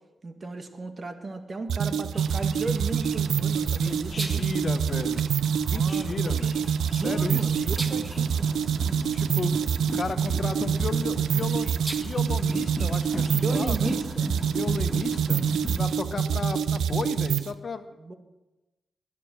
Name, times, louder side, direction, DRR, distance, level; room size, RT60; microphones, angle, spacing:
voice 1, 0.2-4.5 5.7-6.4 6.9-8.5 13.3-15.0 16.1-16.4 18.0-18.1, right 3 dB, 50° right, 6 dB, 2.1 m, -36 dB
sound 1, 1.7-17.5, right 7 dB, 90° right, 0.6 m, -26 dB
sound 2, 2.1-16.0, right 2 dB, 25° right, 1.5 m, -42 dB
voice 2, 3.7-5.3 5.7-6.6 6.9-7.5 9.1-9.7 9.9-13.9 14.4-15.4 15.8-17.9, left 4 dB, 55° left, 8 dB, 1.4 m, -34 dB
sound 3, 5.4-15.9, left 1 dB, 25° left, 4.8 m, -39 dB
21.0 x 9.6 x 6.4 m, 1.1 s
supercardioid pair, 45°, 0 cm